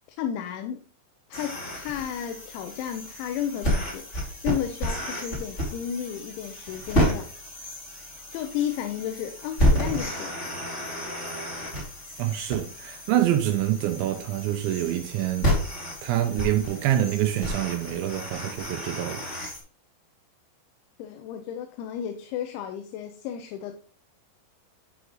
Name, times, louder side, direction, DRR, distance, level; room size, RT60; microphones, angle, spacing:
voice 1, 0.2-0.8 1.3-7.4 8.3-10.4 21.0-23.8, left 9 dB, 80° left, 3.0 m, -33 dB
sound 1, 1.3-19.6, equal, 25° left, 1.6 m, -30 dB
voice 2, 12.2-15.5 16.0-19.2, right 12 dB, 85° right, 2.8 m, -26 dB
10.0 x 5.2 x 3.1 m
omnidirectional pair, 5.4 m